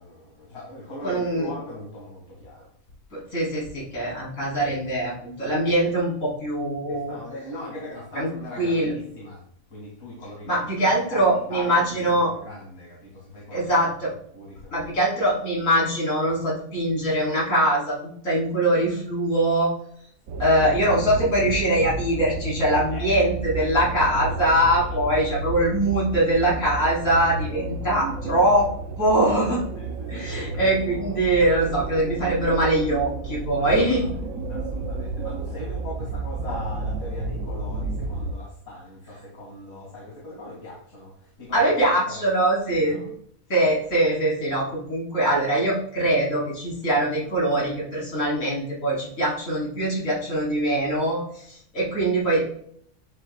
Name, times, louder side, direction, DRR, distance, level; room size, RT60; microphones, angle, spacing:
voice 1, 0.0-2.7 4.6-5.3 6.9-9.4 9.7-10.5 11.1-13.7 14.3-14.8 22.9-23.2 23.5-23.7 24.1-24.6 28.3-28.4 29.8-30.6 33.6-42.2 42.7-43.2, left 1 dB, 90° left, -5 dB, 2.6 m, -40 dB
voice 2, 1.0-1.5 3.1-7.1 8.2-8.3 8.6-8.9 10.5-12.3 13.5-14.1 14.7-18.0 18.2-19.7 20.4-28.7 29.0-29.6 30.1-34.1 41.5-43.0 43.5-52.5, right 1 dB, 75° left, -5 dB, 3.7 m, -22 dB
sound 1, 20.3-38.3, right 3 dB, 85° right, 1.2 m, -31 dB
10.5 x 6.7 x 2.2 m, 0.64 s
omnidirectional pair, 1.4 m